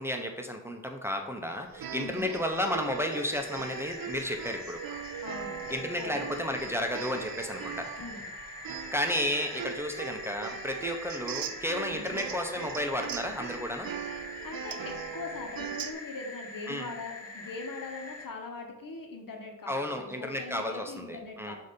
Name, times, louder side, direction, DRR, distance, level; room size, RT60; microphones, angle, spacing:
voice 1, 0.0-4.8 5.7-7.9 8.7-13.9 16.7-16.9 19.7-21.5, left 1 dB, 5° right, 3 dB, 0.7 m, -33 dB
sound 1, 1.7-15.9, right 8 dB, 85° right, 0.5 m, -40 dB
voice 2, 1.9-2.3 5.2-6.3 8.0-8.2 11.9-12.2 14.4-21.6, left 3 dB, 70° left, 3 dB, 1.2 m, -41 dB
sound 2, 2.4-18.3, left 3 dB, 45° left, 1.0 m, -44 dB
7.7 x 2.8 x 5.2 m, 0.95 s
wide cardioid pair, 90°, 34 cm